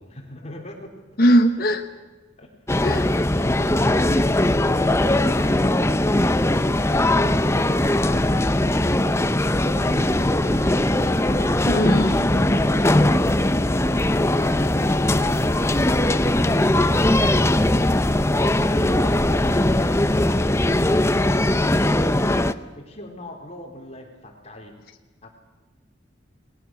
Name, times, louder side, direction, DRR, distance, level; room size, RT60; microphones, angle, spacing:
voice 1, 0.0-1.0 1.6-1.7 2.4-2.5 9.5-10.7 11.1-11.7 12.5-16.8 17.2-18.4 18.6-24.8 25.2-25.3, left 1 dB, 35° left, 2 dB, 3.7 m, -41 dB
voice 2, 1.2-1.8 2.8-3.0 11.6-12.5, equal, 50° left, 4 dB, 1.3 m, -20 dB
sound 1, 2.7-22.5, left 1 dB, 15° left, 0.7 m, -20 dB
29.0 x 20.5 x 6.3 m, 1.3 s
head